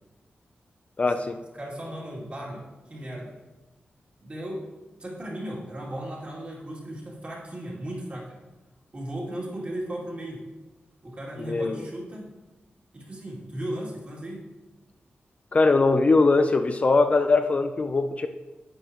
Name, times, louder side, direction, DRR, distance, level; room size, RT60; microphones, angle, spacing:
voice 1, 1.0-1.4 11.4-11.9 15.5-18.3, left 3 dB, 35° left, 8 dB, 0.4 m, -21 dB
voice 2, 1.6-3.3 4.2-4.7 5.0-8.4 8.9-10.4 11.0-12.3 12.9-14.5, right 1 dB, 35° right, -5 dB, 2.5 m, -36 dB
10.5 x 8.2 x 2.9 m, 1.1 s
wide cardioid pair, 130°, 4 cm